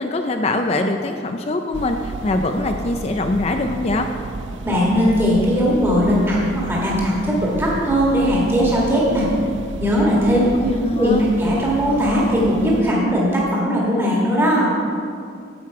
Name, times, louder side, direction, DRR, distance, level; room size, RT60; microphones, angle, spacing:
voice 1, 0.0-4.1 10.3-11.3, left 2 dB, 35° left, 5 dB, 0.4 m, -23 dB
sound 1, 1.7-12.8, right 3 dB, 75° right, 0.4 m, -32 dB
voice 2, 4.6-9.3 9.8-14.7, equal, 15° right, -6 dB, 1.6 m, -19 dB
9.3 x 7.7 x 4.7 m, 2.3 s
head